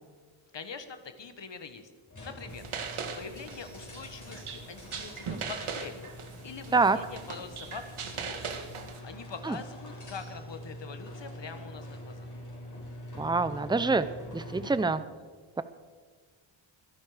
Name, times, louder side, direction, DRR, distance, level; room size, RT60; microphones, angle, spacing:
voice 1, 0.5-1.9 2.2-2.6 3.2-6.1 6.4-8.7 9.0-12.3, left 5 dB, 60° left, 9 dB, 1.4 m, -44 dB
sound 1, 2.1-14.9, left 1 dB, 35° left, 4.9 m, -45 dB
sound 2, 2.5-9.0, right 5 dB, 80° right, 1.7 m, -40 dB
voice 2, 13.2-14.1 14.3-15.0, right 3 dB, 10° right, 13 dB, 0.6 m, -25 dB
24.5 x 11.5 x 5.0 m, 1.5 s
wide cardioid pair, 125°, 49 cm